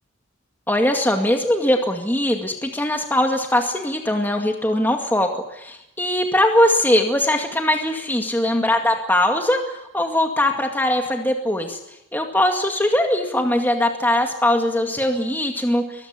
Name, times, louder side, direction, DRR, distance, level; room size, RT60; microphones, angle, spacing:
voice 1, 0.7-11.8 12.1-16.1, left 1 dB, 10° left, 3 dB, 2.2 m, -21 dB
23.0 x 15.0 x 9.9 m, 0.86 s
head